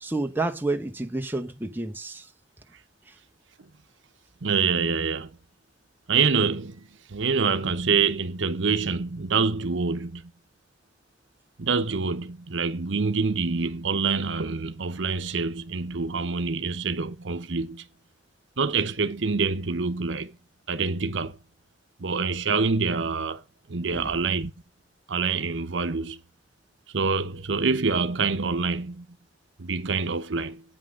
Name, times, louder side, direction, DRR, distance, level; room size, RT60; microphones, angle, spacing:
voice 1, 0.0-2.3 3.1-3.2 23.9-24.1, right 2 dB, 10° right, 1.0 m, -30 dB
voice 2, 4.4-5.4 6.1-6.8 7.1-10.3 11.6-17.9 18.6-20.3 20.7-21.4 22.0-23.4 23.7-24.5 25.1-26.2 26.9-29.1 29.6-30.6, right 4 dB, 80° right, 0.8 m, -26 dB
8.9 x 5.9 x 6.3 m
head